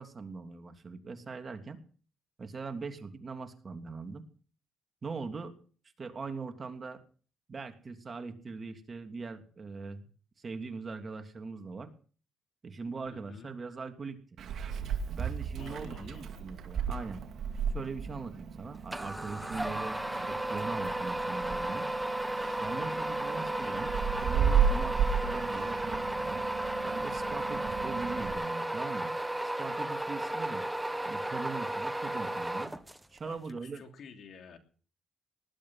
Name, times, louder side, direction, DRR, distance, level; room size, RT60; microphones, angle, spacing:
voice 1, 0.0-1.8 2.4-4.2 5.0-5.6 6.0-7.0 7.5-10.1 10.4-11.9 12.6-14.2 15.0-17.2 17.7-20.0 20.3-21.9 22.6-23.9 24.2-26.4 26.8-29.1 29.4-30.6 31.0-32.7 33.1-33.8, right 4 dB, 40° right, 6 dB, 2.9 m, -41 dB
voice 2, 13.1-13.5 15.6-16.3 33.2-34.6, left 6 dB, 65° left, 5 dB, 3.1 m, -51 dB
Meow, 14.4-28.3, right 7 dB, 65° right, 2.5 m, -34 dB
sound 1, 18.9-33.2, right 1 dB, 10° right, 1.5 m, -34 dB
19.5 x 12.0 x 5.9 m, 0.42 s
cardioid pair, 75°, 0 cm